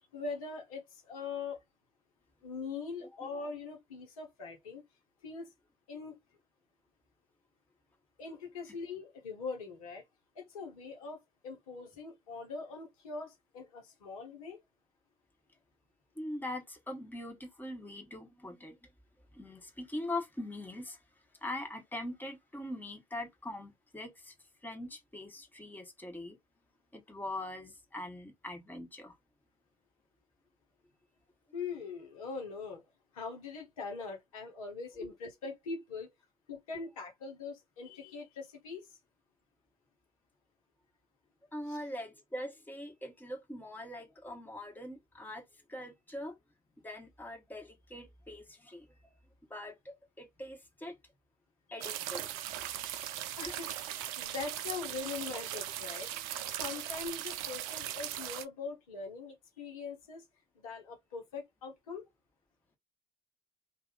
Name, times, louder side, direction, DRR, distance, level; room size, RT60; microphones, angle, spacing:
voice 1, 0.1-1.6 2.4-4.8 5.2-5.5 5.9-6.2 8.2-10.0 10.3-14.6 31.5-32.8 33.1-36.1 36.5-38.9 41.7-41.8 51.8-51.9 52.9-53.0 53.4-56.1 56.5-60.2 60.5-62.1, left 4 dB, 80° left, 1.1 m, -42 dB
voice 2, 16.1-18.9 19.3-21.0 21.4-24.3 24.6-26.4 26.9-29.2 35.0-35.1 41.5-46.3 46.8-48.9 49.5-51.0 51.7-52.3 53.4-53.5 53.8-53.9, left 1 dB, 10° left, 1.3 m, -42 dB
sound 1, 51.8-58.5, right 12 dB, 70° right, 0.5 m, -39 dB
2.7 x 2.6 x 3.8 m
hypercardioid pair, 60°, 18 cm